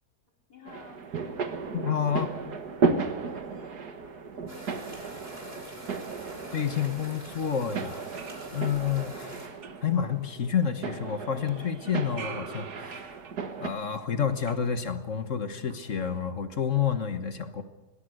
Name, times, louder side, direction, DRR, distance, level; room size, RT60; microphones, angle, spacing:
voice 1, 0.5-1.0 2.8-5.4, left 3 dB, 75° left, 0 dB, 5.0 m, -52 dB
sound 1, 0.7-13.7, right 4 dB, 75° right, 2.1 m, -34 dB
voice 2, 1.7-2.3 6.5-8.0 8.5-9.4 9.8-13.1 13.6-17.6, left 8 dB, 50° left, 9 dB, 1.6 m, -29 dB
sound 2, 4.5-9.5, right 1 dB, 25° right, 3.9 m, -44 dB
sound 3, 8.0-11.0 11.4-15.3 15.6-16.3, right 6 dB, 50° right, 1.3 m, -47 dB
21.5 x 18.5 x 6.5 m, 1.1 s
omnidirectional pair, 1.7 m